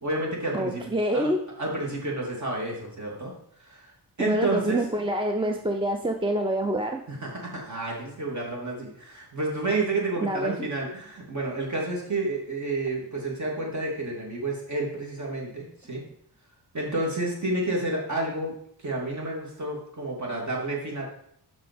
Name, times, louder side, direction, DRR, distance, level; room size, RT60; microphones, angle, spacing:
voice 1, 0.0-0.8 1.1-1.3 1.6-3.9 4.2-4.9 7.1-16.0 16.7-21.0, right 2 dB, 40° right, -2 dB, 2.7 m, -30 dB
voice 2, 0.5-1.4 4.2-7.0 10.2-10.5, right 1 dB, 10° right, 4 dB, 0.6 m, -26 dB
6.0 x 5.7 x 5.3 m, 0.68 s
cardioid pair, 85°, 42 cm